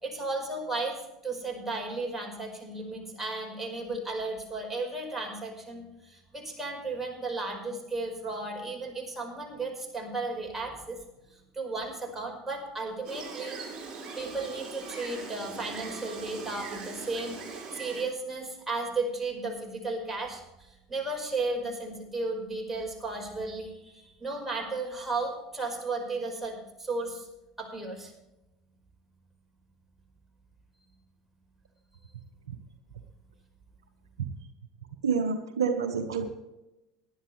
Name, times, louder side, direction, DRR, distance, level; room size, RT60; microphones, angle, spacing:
voice 1, 0.0-11.0 11.3-13.6 14.1-27.3 27.6-28.1, right 3 dB, 10° right, 0 dB, 5.0 m, -34 dB
Gull seagull, 13.0-18.0, right 4 dB, 30° right, 4.8 m, -41 dB
voice 2, 35.0-36.3, right 6 dB, 75° right, 7 dB, 1.0 m, -28 dB
19.0 x 11.0 x 3.3 m, 0.95 s
figure-of-eight pair, 70°, 3 cm